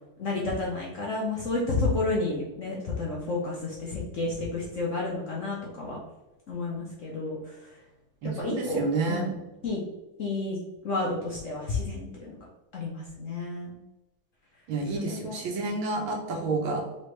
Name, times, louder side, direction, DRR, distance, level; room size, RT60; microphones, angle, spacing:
voice 1, 0.2-6.0 6.5-7.6 8.2-9.4 9.6-9.8 10.2-10.6 10.8-12.4 12.7-13.8 14.9-15.4, left 3 dB, 70° left, -4 dB, 0.7 m, -31 dB
voice 2, 8.2-9.3 14.7-16.8, right 3 dB, 70° right, 1 dB, 1.6 m, -29 dB
4.0 x 3.2 x 3.2 m, 0.99 s
omnidirectional pair, 2.3 m